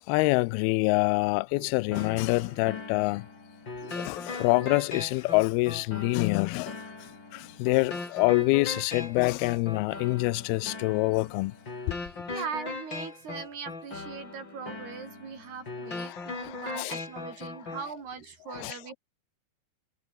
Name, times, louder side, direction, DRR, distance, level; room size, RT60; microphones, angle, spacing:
voice 1, 0.1-3.3 3.9-6.8 7.3-11.5 11.9-12.0 12.3-12.4 16.0-17.0 18.5-18.8, left 23 dB, 90° left, 2.2 m, -26 dB
sound 1, 1.9-17.9, left 3 dB, 25° left, 5.2 m, -40 dB
voice 2, 11.9-18.9, right 6 dB, 65° right, 6.6 m, -40 dB
omnidirectional pair, 5.1 m